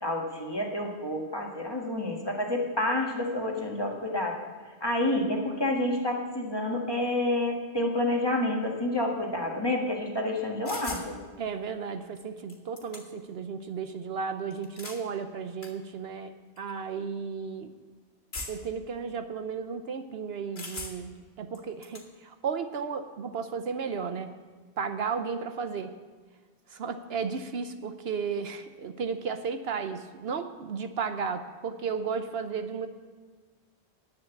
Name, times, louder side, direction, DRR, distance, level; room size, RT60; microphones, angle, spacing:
voice 1, 0.0-4.4 4.8-11.2, left 1 dB, 25° left, 0 dB, 1.7 m, -29 dB
sound 1, 10.7-11.1 12.2-12.3 12.5-13.3 14.5-15.0 15.6-15.7 16.6-16.7 18.3-18.8 20.6-21.2 21.5-22.1, left 2 dB, 70° left, 2.0 m, -40 dB
voice 2, 11.4-17.7 18.5-24.3 24.8-26.0 26.7-32.9, right 5 dB, 70° right, 9 dB, 0.9 m, -34 dB
10.5 x 9.0 x 7.1 m, 1.5 s
omnidirectional pair, 1.1 m